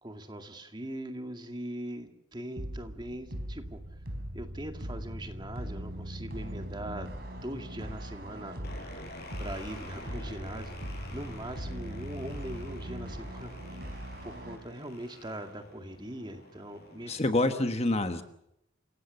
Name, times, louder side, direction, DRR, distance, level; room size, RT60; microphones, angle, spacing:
voice 1, 0.0-3.8 4.3-8.7 9.4-17.2, right 1 dB, 20° right, 6 dB, 2.2 m, -41 dB
sound 1, 2.6-14.6, equal, 50° right, 4.0 m, -40 dB
sound 2, 8.6-17.3, left 1 dB, 50° left, 5.1 m, -48 dB
voice 2, 17.1-18.2, left 2 dB, 30° left, 9 dB, 1.2 m, -27 dB
28.0 x 17.0 x 6.9 m, 0.79 s
head